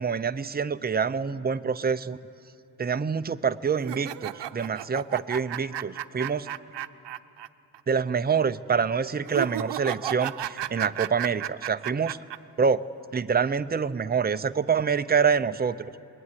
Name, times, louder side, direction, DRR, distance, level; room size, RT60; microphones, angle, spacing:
voice 1, 0.0-2.2 2.8-6.5 7.9-12.2 12.6-12.8 13.1-16.0, right 6 dB, 25° right, 11 dB, 0.5 m, -26 dB
sound 1, 3.8-7.5 7.7-7.8 9.3-12.4, right 12 dB, 85° right, 0.7 m, -34 dB
27.0 x 21.5 x 9.7 m, 2.7 s
wide cardioid pair, 145°, 41 cm